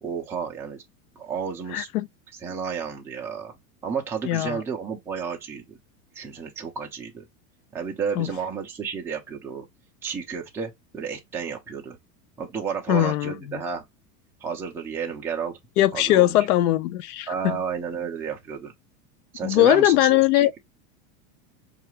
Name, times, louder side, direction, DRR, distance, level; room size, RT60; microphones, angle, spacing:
voice 1, 0.0-0.8 1.2-1.9 2.4-3.5 3.8-5.8 6.1-7.2 7.7-9.7 10.0-12.0 12.4-13.8 14.4-15.6 15.9-16.3 17.3-18.7 19.3-20.6, right 6 dB, 5° right, 0.4 m, -31 dB
voice 2, 1.7-2.1 4.3-4.6 8.2-8.3 12.9-13.6 15.8-17.6 19.4-20.5, left 15 dB, 90° left, 0.6 m, -20 dB
4.7 x 2.4 x 2.9 m
supercardioid pair, 135°, 44 cm